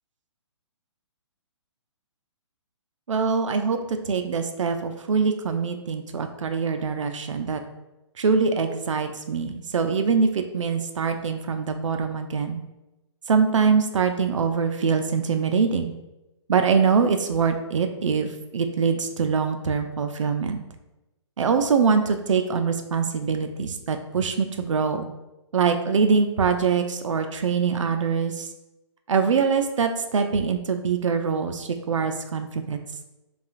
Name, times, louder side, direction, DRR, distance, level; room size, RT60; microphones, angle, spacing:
voice 1, 3.1-7.6 8.2-12.6 13.3-15.9 16.5-20.6 21.4-25.1 25.5-28.5 29.1-32.8, right 5 dB, 85° right, 7 dB, 0.5 m, -23 dB
5.4 x 2.4 x 2.4 m, 0.97 s
hypercardioid pair, 150°, 16 cm